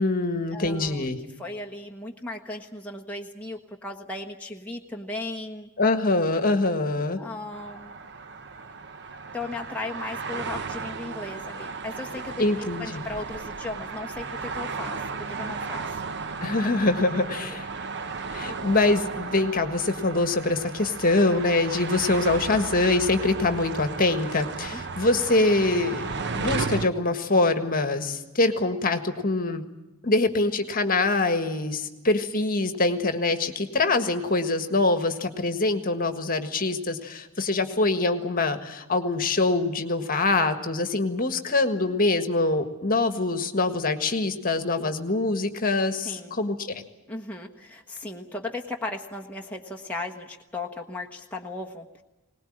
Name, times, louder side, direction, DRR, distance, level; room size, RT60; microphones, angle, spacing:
voice 1, 0.0-1.2 5.8-7.2 12.4-13.0 16.4-17.7 18.3-26.1 26.3-29.6 30.0-46.6, left 2 dB, 40° left, 8 dB, 1.6 m, -24 dB
voice 2, 0.5-1.1 1.4-5.7 7.2-7.9 9.3-12.4 12.8-16.0 17.4-17.6 24.7-24.8 44.8-45.0 46.0-46.4 47.1-52.0, left 2 dB, 5° left, 0 dB, 1.3 m, -36 dB
sound 1, 7.5-26.9, right 4 dB, 50° right, 0.9 m, -34 dB
21.5 x 19.5 x 8.8 m, 1.1 s
head